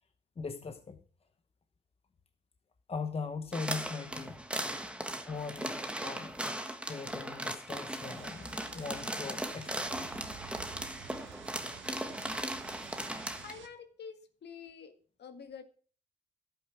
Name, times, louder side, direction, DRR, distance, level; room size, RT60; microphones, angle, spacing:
voice 1, 0.4-1.0 2.9-4.4 5.3-6.4 6.7-10.1, left 4 dB, 30° left, 1.0 m, -40 dB
sound 1, 3.5-13.5, right 1 dB, 5° right, 1.4 m, -38 dB
sound 2, 8.0-13.7, right 8 dB, 75° right, 1.4 m, -50 dB
voice 2, 13.4-14.9 15.2-15.6, left 6 dB, 60° left, 1.9 m, -47 dB
11.5 x 8.5 x 5.9 m
cardioid pair, 90°, 20 cm